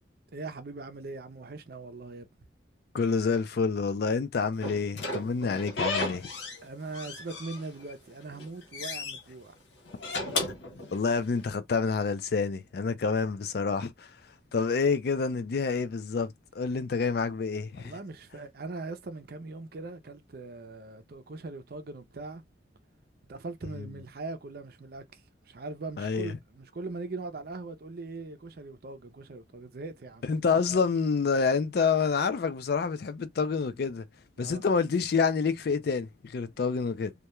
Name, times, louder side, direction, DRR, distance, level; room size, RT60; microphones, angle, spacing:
voice 1, 0.3-2.3 6.6-9.5 17.7-22.4 23.3-30.3 34.4-34.6, right 3 dB, 50° right, 0.5 m, -41 dB
voice 2, 2.9-6.3 10.9-14.1 14.5-17.9 23.8-23.9 26.0-26.3 30.2-34.1 34.4-37.1, left 5 dB, 50° left, 0.3 m, -28 dB
Slam / Squeak, 4.6-6.6 6.9-7.9 8.3-9.2 9.9-11.4, left 2 dB, 70° left, 0.8 m, -34 dB
2.3 x 2.1 x 2.9 m
head